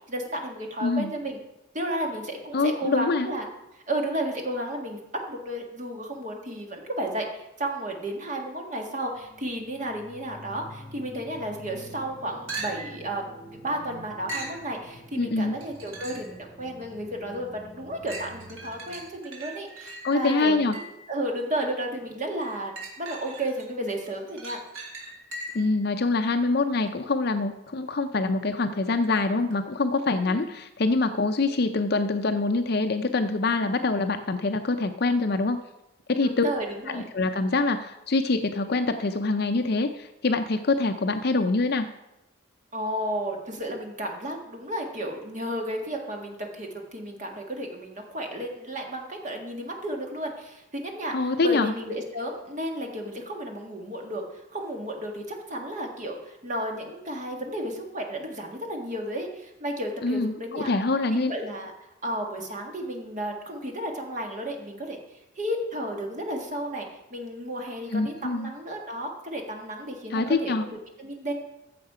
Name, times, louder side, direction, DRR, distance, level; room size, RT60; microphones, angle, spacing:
voice 1, 0.1-1.4 1.7-3.5 3.9-5.0 5.3-20.8 21.1-22.7 23.0-24.6 30.2-30.5 36.2-37.0 42.7-60.7 61.1-61.7 62.0-65.0 65.4-71.3, right 1 dB, 35° right, 2 dB, 1.7 m, -33 dB
voice 2, 0.8-1.1 2.5-3.3 15.2-15.6 20.0-20.8 25.5-35.6 36.1-36.5 36.9-41.9 51.1-51.7 60.0-61.3 67.9-68.5 70.1-70.7, left 3 dB, 50° left, 7 dB, 0.5 m, -25 dB
sound 1, 9.1-19.0, equal, ahead, 3.0 m, -47 dB
sound 2, 12.5-13.0 14.3-14.6 15.6-16.4 16.9-17.0 18.1-21.1 22.4-23.6 24.0-25.7 29.5-29.6, right 2 dB, 80° right, 2.7 m, -39 dB
14.5 x 6.4 x 4.9 m, 0.91 s
head